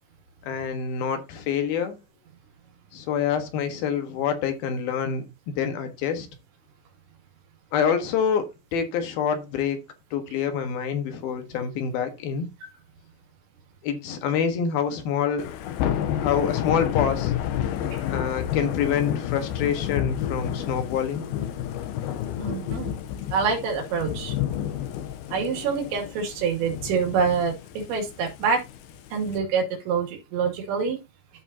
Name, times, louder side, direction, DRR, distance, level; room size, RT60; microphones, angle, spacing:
voice 1, 0.4-2.0 2.9-6.3 7.7-9.8 10.1-12.5 13.8-15.5 16.2-17.3 18.1-21.2, left 7 dB, 65° left, 2.7 m, -26 dB
Thunder / Rain, 15.4-29.4, left 10 dB, 90° left, 2.1 m, -30 dB
voice 2, 22.4-22.9 23.3-24.3 25.3-27.5 27.9-28.6 29.1-31.0, right 5 dB, 70° right, 4.6 m, -26 dB
13.5 x 5.4 x 2.7 m
omnidirectional pair, 5.3 m